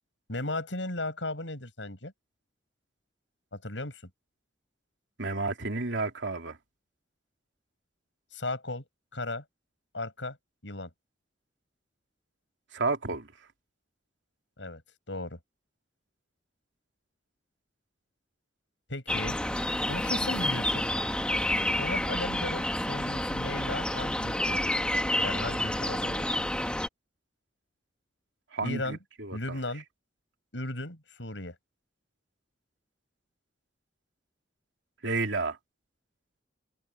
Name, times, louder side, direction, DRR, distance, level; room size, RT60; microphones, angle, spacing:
voice 1, 0.3-2.1 3.5-4.0 8.3-8.8 9.1-9.4 9.9-10.4 10.6-10.9 14.6-14.8 15.1-15.4 18.9-19.4 19.9-20.9 21.7-24.7 25.2-26.5 28.6-29.0 29.3-29.8 30.5-31.5, left 2 dB, 85° left, 7.4 m, -36 dB
voice 2, 5.2-6.6 12.7-13.3 28.5-29.4 35.0-35.6, right 3 dB, 85° right, 2.9 m, -31 dB
sound 1, 19.1-26.9, left 1 dB, 5° left, 1.4 m, -29 dB
head